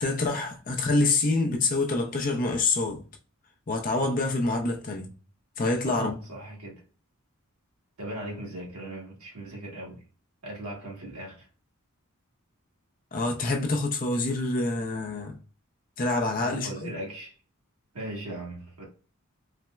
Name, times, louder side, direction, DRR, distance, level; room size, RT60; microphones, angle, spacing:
voice 1, 0.0-3.0 3.7-5.1 5.6-6.2 13.1-15.4 16.0-16.9, left 3 dB, 40° left, 0.5 m, -26 dB
voice 2, 5.8-6.8 8.0-10.0 10.4-11.5 16.4-17.3 17.9-18.8, right 1 dB, 80° right, 1.3 m, -38 dB
4.0 x 2.0 x 2.2 m
head